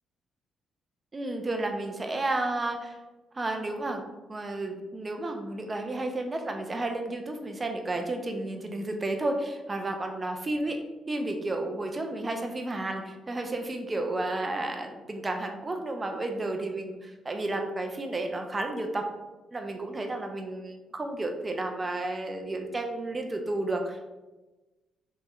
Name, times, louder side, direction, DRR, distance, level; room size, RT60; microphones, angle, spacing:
voice 1, 1.1-3.0 3.3-4.0 4.3-10.8 11.1-19.1 19.5-24.1, right 2 dB, 25° right, 4 dB, 0.4 m, -32 dB
3.3 x 3.2 x 3.0 m, 1.1 s
cardioid pair, 90°, 0 cm